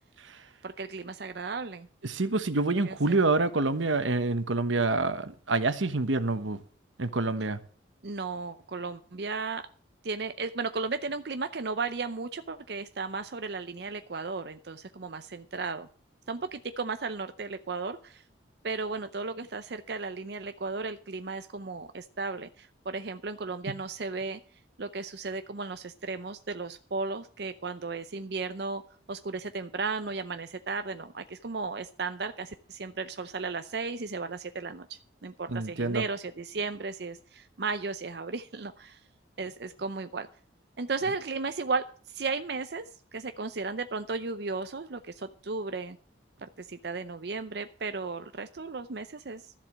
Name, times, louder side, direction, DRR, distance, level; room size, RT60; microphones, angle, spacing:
voice 1, 0.6-1.9 2.8-2.9 8.0-9.7 10.0-15.9 16.3-18.2 18.6-24.4 24.8-28.8 29.1-39.0 39.4-40.3 40.8-46.0 46.4-49.5, right 4 dB, 60° right, 0.6 m, -35 dB
voice 2, 2.0-6.6 7.0-7.6 23.7-23.8 35.5-36.0, right 3 dB, 85° right, 1.2 m, -27 dB
13.5 x 7.7 x 6.3 m
head